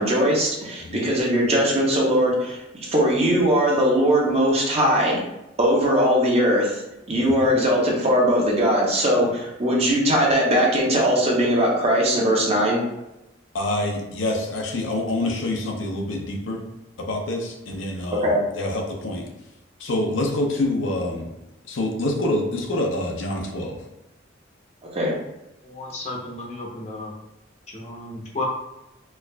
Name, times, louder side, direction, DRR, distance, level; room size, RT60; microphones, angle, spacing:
voice 1, 0.0-5.2 5.6-6.8 7.1-12.8 18.2-18.4 24.9-25.1, equal, 30° right, -3 dB, 0.8 m, -20 dB
voice 2, 13.5-16.6 17.0-19.3 19.8-21.3 21.7-23.8, left 1 dB, 75° left, 2 dB, 0.6 m, -26 dB
voice 3, 25.6-27.1 27.7-28.4, left 2 dB, 35° left, -1 dB, 0.7 m, -33 dB
4.5 x 2.4 x 2.2 m, 0.94 s
head